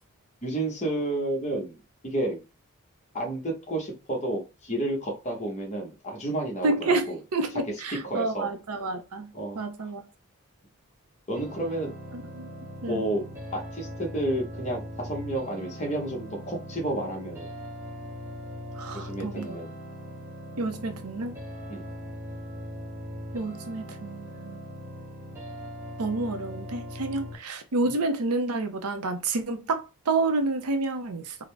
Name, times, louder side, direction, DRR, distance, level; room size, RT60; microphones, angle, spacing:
voice 1, 0.4-2.4 3.1-7.2 7.9-8.5 9.3-9.6 11.3-11.9 12.9-13.3 13.5-17.6 18.9-19.8 21.7-21.8, right 1 dB, 30° left, 1.0 m, -31 dB
voice 2, 6.6-9.3 9.6-10.0 12.3-12.5 12.8-13.1 18.8-19.6 20.6-21.3 23.3-24.7 26.0-31.4, right 3 dB, 85° right, 0.6 m, -29 dB
sound 1, 11.4-27.3, equal, 10° right, 0.8 m, -40 dB
3.7 x 2.1 x 3.3 m
head